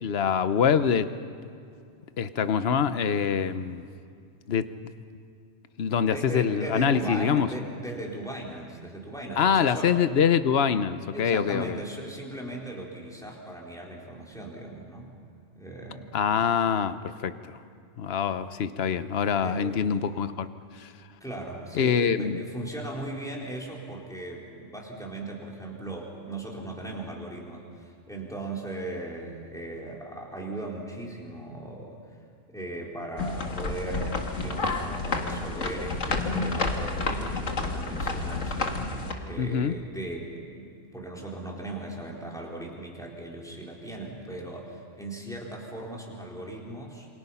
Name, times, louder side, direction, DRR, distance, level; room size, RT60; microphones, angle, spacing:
voice 1, 0.0-1.1 2.2-3.8 4.5-4.9 5.8-7.5 9.4-11.8 16.1-17.0 17.2-17.6 18.0-20.5 20.8-20.9 21.8-22.4 39.4-39.7, left 7 dB, 55° left, 12 dB, 1.1 m, -25 dB
voice 2, 6.0-9.9 11.1-15.2 15.5-16.1 19.4-19.8 21.2-32.0 32.5-38.6 39.2-47.1, right 1 dB, 5° left, -2 dB, 4.0 m, -38 dB
sound 1, 33.2-39.1, left 3 dB, 80° left, 2.2 m, -30 dB
28.0 x 25.5 x 5.7 m, 2.4 s
omnidirectional pair, 1.3 m